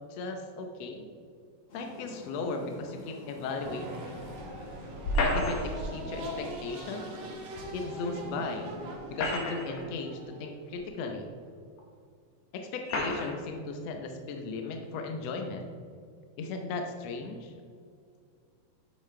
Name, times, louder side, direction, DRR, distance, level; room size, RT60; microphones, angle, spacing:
voice 1, 0.1-1.1 1.7-4.2 5.1-7.1 7.7-8.8 9.1-11.3 12.5-15.7 16.4-17.5, left 3 dB, 80° left, 4 dB, 1.4 m, -36 dB
sound 1, 1.7-9.9, left 1 dB, 45° left, 1.8 m, -47 dB
sound 2, 3.6-11.5, right 1 dB, 75° right, 2.9 m, -42 dB
sound 3, 5.0-5.9 7.6-7.7 8.9-9.9 10.7-10.8 11.8-11.9 12.8-13.4, left 1 dB, 60° left, 2.7 m, -30 dB
9.7 x 8.2 x 3.3 m, 2.2 s
omnidirectional pair, 4.1 m